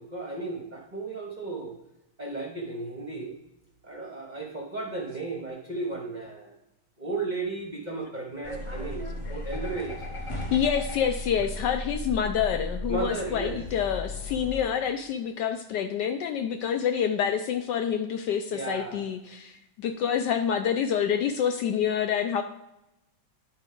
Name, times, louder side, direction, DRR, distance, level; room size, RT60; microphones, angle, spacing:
voice 1, 0.0-1.8 2.2-3.4 3.8-6.5 7.0-10.0 12.9-13.6 18.5-19.1, right 3 dB, 30° right, 0 dB, 0.8 m, -34 dB
sound 1, 8.4-14.6, left 1 dB, 30° left, 0.5 m, -35 dB
voice 2, 10.5-22.4, left 8 dB, 75° left, 7 dB, 1.0 m, -27 dB
10.0 x 5.3 x 3.8 m, 0.87 s
omnidirectional pair, 2.2 m